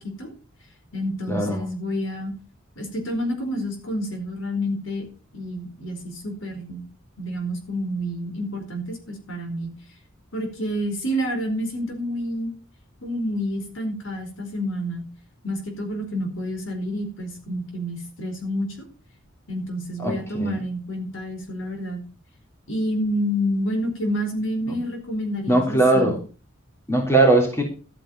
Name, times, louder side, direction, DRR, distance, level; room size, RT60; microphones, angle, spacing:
voice 1, 0.9-2.3 2.8-5.1 5.3-6.9 7.2-9.7 10.3-12.5 13.0-15.1 15.4-18.7 19.5-22.0 22.7-26.1, equal, 65° left, 4 dB, 4.6 m, -28 dB
voice 2, 20.0-20.5 24.7-24.8 25.5-26.2 26.9-27.6, right 2 dB, 15° left, 1 dB, 3.3 m, -19 dB
13.0 x 9.2 x 5.4 m, 0.35 s
head